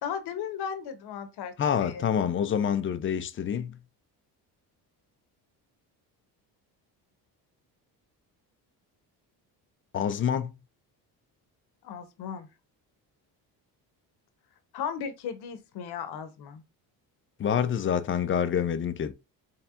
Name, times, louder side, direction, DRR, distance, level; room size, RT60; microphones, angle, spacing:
voice 1, 0.0-2.0 11.8-12.5 14.7-16.6, left 7 dB, 70° left, 0.9 m, -36 dB
voice 2, 1.6-3.8 9.9-10.5 17.4-19.1, left 8 dB, 30° left, 0.4 m, -27 dB
4.3 x 3.2 x 2.4 m
cardioid pair, 105°, 40 cm